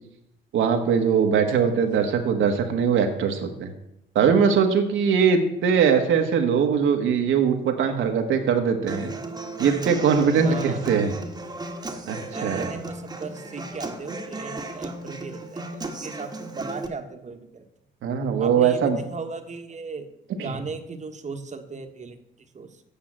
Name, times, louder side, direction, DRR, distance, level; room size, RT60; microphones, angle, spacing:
voice 1, 0.5-3.7 4.1-9.1 9.6-11.2 12.1-12.7 18.0-19.0 20.4-20.6, right 6 dB, 80° right, 4 dB, 1.4 m, -21 dB
Human voice / Acoustic guitar, 8.9-16.9, right 2 dB, 20° right, 1.3 m, -35 dB
voice 2, 10.3-10.8 12.3-17.6 18.4-20.1 20.4-22.8, right 4 dB, 35° right, 6 dB, 1.3 m, -37 dB
8.6 x 5.7 x 7.5 m, 0.83 s
cardioid pair, 90°, 20 cm